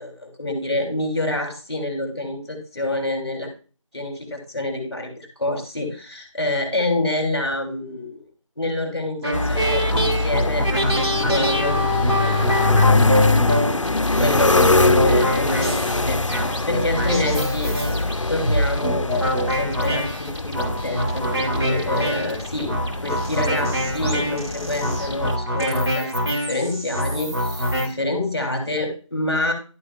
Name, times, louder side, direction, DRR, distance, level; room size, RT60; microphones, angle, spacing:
voice 1, 0.0-3.5 3.9-8.2 8.6-11.8 12.2-12.6 14.2-17.7 18.3-29.5, left 2 dB, ahead, -1 dB, 2.6 m, -27 dB
sound 1, 9.2-27.9, equal, 50° right, 2.4 m, -25 dB
sound 2, 9.3-25.4, left 3 dB, 65° left, 0.5 m, -23 dB
11.5 x 9.2 x 2.5 m, 0.38 s
figure-of-eight pair, 175°, 17 cm